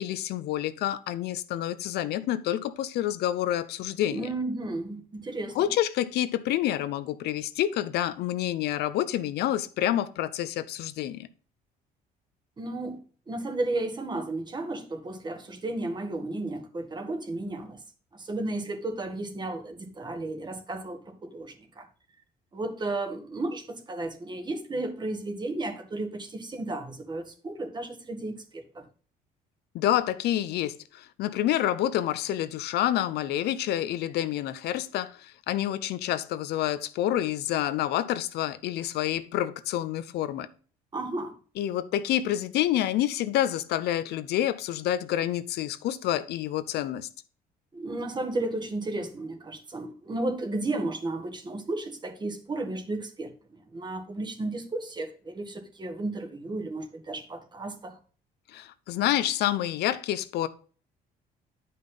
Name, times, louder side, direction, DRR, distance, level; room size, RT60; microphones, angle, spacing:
voice 1, 0.0-4.3 5.6-11.3 29.7-40.5 41.6-47.1 58.5-60.5, left 12 dB, 75° left, 0.6 m, -28 dB
voice 2, 4.1-5.7 12.6-13.0 13.3-17.8 18.1-21.9 22.5-28.9 40.9-41.4 47.7-58.0, right 2 dB, 25° right, 1.4 m, -33 dB
9.4 x 5.4 x 3.8 m
cardioid pair, 110°, 17 cm